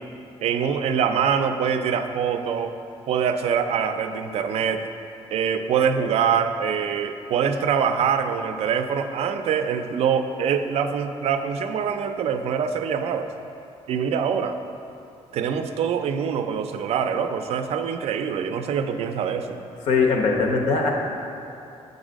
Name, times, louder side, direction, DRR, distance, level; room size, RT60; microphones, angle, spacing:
voice 1, 0.4-2.7 3.1-4.9 5.3-13.3 13.9-14.6 15.3-19.6, right 7 dB, 60° right, 8 dB, 0.4 m, -24 dB
voice 2, 19.9-20.9, left 4 dB, 80° left, 1 dB, 0.9 m, -20 dB
7.1 x 4.0 x 5.0 m, 2.8 s
cardioid pair, 175°, 11 cm